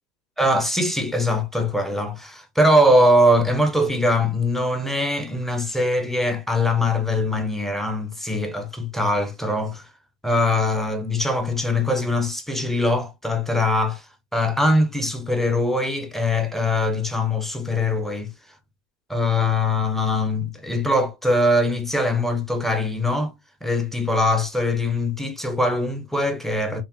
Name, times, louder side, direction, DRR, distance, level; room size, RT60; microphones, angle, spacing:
voice 1, 0.4-9.9 10.2-14.1 14.3-18.3 19.1-23.3 23.6-26.8, left 1 dB, ahead, 0.5 m, -22 dB
5.6 x 2.0 x 2.7 m
supercardioid pair, 140°, 40 cm